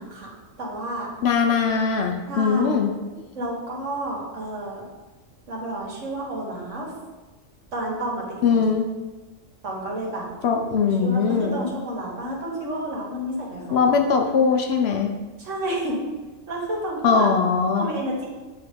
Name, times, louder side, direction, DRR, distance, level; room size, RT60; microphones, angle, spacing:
voice 1, 0.0-1.1 2.3-2.9 3.3-4.8 5.5-6.9 7.7-8.6 9.6-10.3 10.8-14.0 15.4-16.0 16.5-17.3 17.7-18.3, right 1 dB, 70° right, -2 dB, 1.7 m, -30 dB
voice 2, 1.2-2.9 8.4-8.9 10.4-11.6 13.7-15.1 17.0-17.9, left 5 dB, 65° left, 3 dB, 0.8 m, -20 dB
7.9 x 3.0 x 5.0 m, 1.2 s
omnidirectional pair, 1.3 m